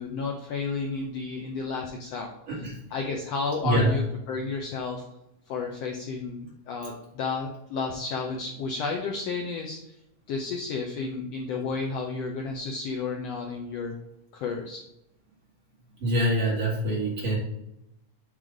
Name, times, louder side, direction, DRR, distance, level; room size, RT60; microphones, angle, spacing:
voice 1, 0.0-2.3 2.9-5.0 5.5-9.8 10.3-13.9 14.3-14.8, left 4 dB, 75° left, 1 dB, 1.5 m, -32 dB
voice 2, 2.5-2.8 3.6-3.9 16.0-17.4, right 1 dB, 45° right, -5 dB, 2.7 m, -25 dB
7.5 x 3.2 x 5.0 m, 0.86 s
omnidirectional pair, 3.7 m